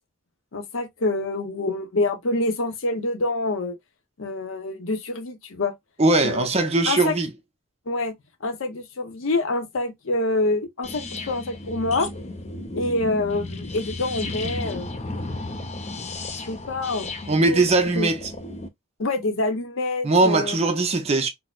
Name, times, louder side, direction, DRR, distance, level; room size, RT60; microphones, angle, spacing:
voice 1, 0.5-3.8 4.2-5.7 6.2-6.5 6.9-7.1 7.9-8.1 8.4-12.1 12.7-15.0 16.5-17.1 17.5-17.7 17.9-18.1 19.0-20.6, left 2 dB, 75° left, 0.7 m, -26 dB
voice 2, 6.0-7.3 17.3-18.3 20.0-21.3, right 2 dB, 30° right, 0.5 m, -20 dB
sound 1, 10.8-18.7, left 2 dB, 30° left, 0.5 m, -34 dB
4.2 x 2.0 x 2.3 m
head